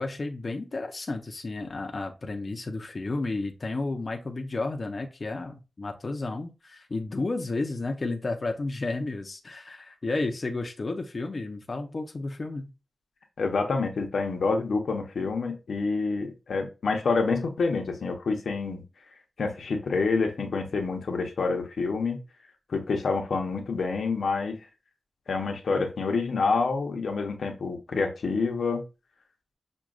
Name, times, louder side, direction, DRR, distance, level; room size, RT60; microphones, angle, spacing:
voice 1, 0.0-12.7, left 3 dB, 40° left, 3 dB, 0.5 m, -32 dB
voice 2, 13.4-18.8 19.4-22.2 22.7-24.6 25.3-28.8, left 4 dB, 80° left, 4 dB, 0.7 m, -27 dB
6.0 x 2.2 x 2.3 m, 0.29 s
wide cardioid pair, 120°, 0 cm